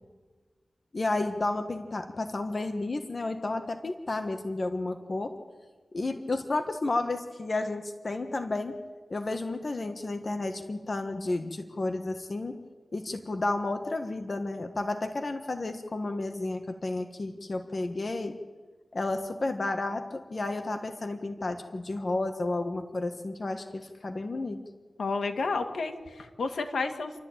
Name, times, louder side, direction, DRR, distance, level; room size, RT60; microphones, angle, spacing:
voice 1, 0.9-5.3 5.9-8.8 9.1-12.6 12.9-18.4 18.9-24.6, left 2 dB, 50° left, 6 dB, 1.4 m, -32 dB
voice 2, 25.0-27.1, left 3 dB, 85° left, 5 dB, 1.9 m, -31 dB
29.0 x 13.0 x 8.8 m, 1.5 s
wide cardioid pair, 70°, 0 cm